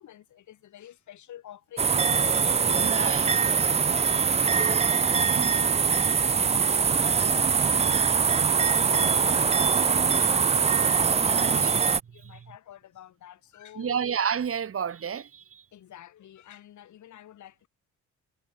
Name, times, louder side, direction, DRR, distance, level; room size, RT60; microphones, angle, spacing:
voice 1, 0.0-3.3 3.6-11.8 12.1-14.0 15.7-17.7, left 11 dB, 70° left, 6.3 m, -47 dB
sound 1, 1.8-12.0, right 6 dB, 20° right, 0.4 m, -23 dB
voice 2, 2.8-3.3 11.3-11.7 12.2-12.5 13.8-15.7, right 7 dB, 45° right, 2.8 m, -31 dB
cardioid pair, 90°, 30 cm